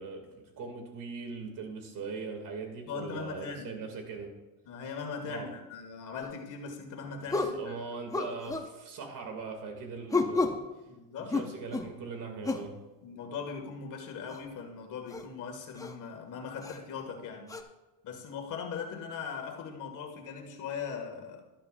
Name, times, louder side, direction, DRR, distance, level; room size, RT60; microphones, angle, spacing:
voice 1, 0.0-4.3 5.2-5.5 7.4-10.6 11.2-12.8, right 4 dB, 55° right, 2.5 m, -40 dB
voice 2, 2.9-3.9 4.6-7.9 10.9-11.4 13.0-17.5 18.0-21.4, left 6 dB, 50° left, 2.0 m, -40 dB
sound 1, 6.2-6.4 7.3-7.6 8.1-8.7 10.1-10.6 11.3-11.9 12.4-12.7 14.3-14.4 15.1-15.2 15.8-15.9 16.6-16.8 17.5-17.6, left 3 dB, 10° left, 0.6 m, -31 dB
12.0 x 12.0 x 2.6 m
cardioid pair, 130°, 38 cm